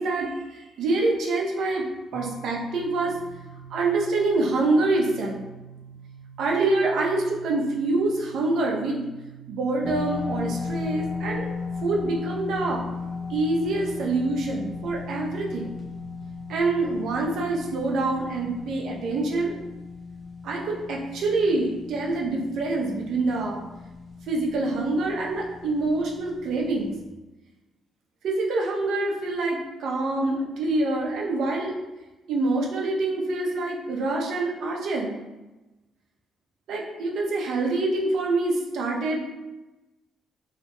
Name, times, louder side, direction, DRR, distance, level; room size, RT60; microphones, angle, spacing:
voice 1, 0.0-1.9 2.1-3.2 3.7-5.4 6.4-9.1 9.5-11.5 11.8-12.8 13.3-15.7 16.5-19.5 20.4-23.6 24.3-26.9 28.2-31.7 32.3-35.2 36.7-39.2, right 2 dB, 75° right, -1 dB, 0.5 m, -26 dB
sound 1, 2.1-18.6, right 7 dB, 15° right, 0.5 m, -46 dB
sound 2, 9.8-27.1, left 4 dB, 30° left, 0.6 m, -36 dB
2.8 x 2.1 x 2.9 m, 1.1 s
cardioid pair, 90°, 0 cm